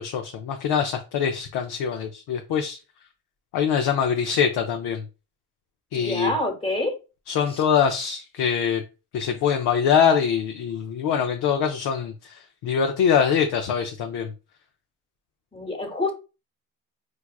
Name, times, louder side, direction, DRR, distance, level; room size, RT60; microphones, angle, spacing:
voice 1, 0.0-2.8 3.5-5.0 5.9-6.3 7.3-8.8 9.1-14.3, left 7 dB, 85° left, 0.5 m, -23 dB
voice 2, 5.9-7.0 7.5-7.6 15.5-16.1, left 1 dB, 15° left, 1.1 m, -27 dB
4.6 x 2.3 x 2.2 m
cardioid pair, 55°, 38 cm